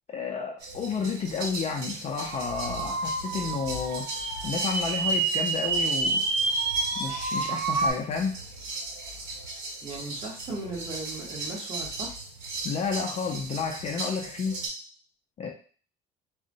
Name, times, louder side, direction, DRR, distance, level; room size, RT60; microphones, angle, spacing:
voice 1, 0.1-4.1 4.4-6.2 7.0-8.4 12.6-14.7 15.4-15.5, left 5 dB, 30° left, 0 dB, 0.4 m, -31 dB
sound 1, 0.6-14.7, right 2 dB, 85° right, 1.2 m, -38 dB
sound 2, 2.3-7.9, right 3 dB, 60° right, 0.5 m, -28 dB
voice 2, 9.8-12.1, right 2 dB, 30° right, -2 dB, 1.0 m, -37 dB
3.7 x 2.1 x 2.6 m, 0.40 s
cardioid pair, 155°, 20 cm